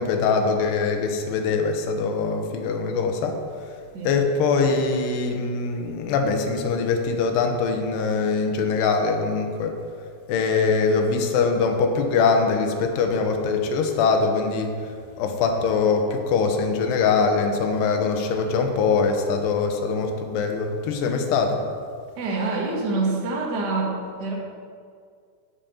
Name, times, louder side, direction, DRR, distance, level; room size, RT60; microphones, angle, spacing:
voice 1, 0.0-3.3 4.0-9.7 10.3-14.8 15.2-21.6, left 4 dB, 85° left, 4 dB, 3.2 m, -22 dB
voice 2, 22.2-24.3, right 3 dB, 45° right, -1 dB, 1.3 m, -26 dB
8.8 x 8.7 x 7.2 m, 2.2 s
omnidirectional pair, 4.7 m